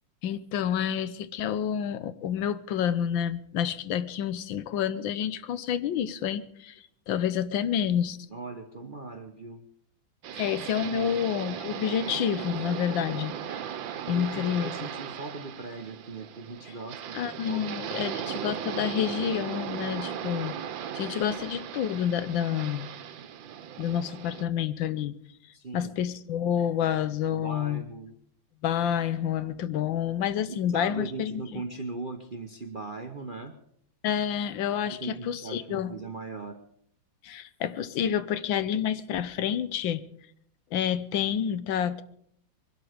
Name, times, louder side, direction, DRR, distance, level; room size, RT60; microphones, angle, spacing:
voice 1, 0.2-8.2 10.3-13.6 14.1-14.8 17.1-20.6 20.9-22.9 23.8-25.1 25.7-27.8 28.6-31.6 34.0-36.0 37.2-40.1 40.7-42.0, left 9 dB, 75° left, 14 dB, 1.5 m, -29 dB
voice 2, 8.3-9.7 10.8-11.2 14.0-18.2 25.5-25.9 27.3-28.1 30.5-33.6 34.8-36.6, right 3 dB, 40° right, 6 dB, 0.8 m, -39 dB
sound 1, 10.2-24.4, right 9 dB, 75° right, 1.6 m, -37 dB
22.0 x 12.5 x 5.1 m, 0.69 s
omnidirectional pair, 2.1 m